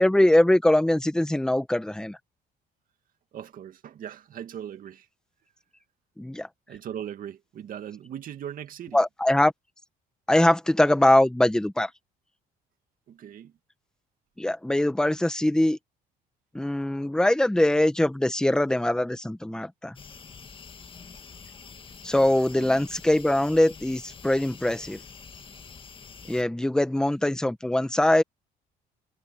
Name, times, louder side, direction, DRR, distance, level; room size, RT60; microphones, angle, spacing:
voice 1, 0.0-2.2 6.2-6.5 8.9-9.5 10.3-11.9 14.4-15.8 16.5-19.9 22.0-25.0 26.3-28.2, left 1 dB, 5° left, 1.3 m, -22 dB
voice 2, 3.3-5.1 6.7-9.0 13.1-13.5 22.5-22.8, right 9 dB, 55° right, 2.2 m, -39 dB
sound 1, 20.0-26.4, left 5 dB, 30° left, 1.7 m, -46 dB
cardioid pair, 110°, 17 cm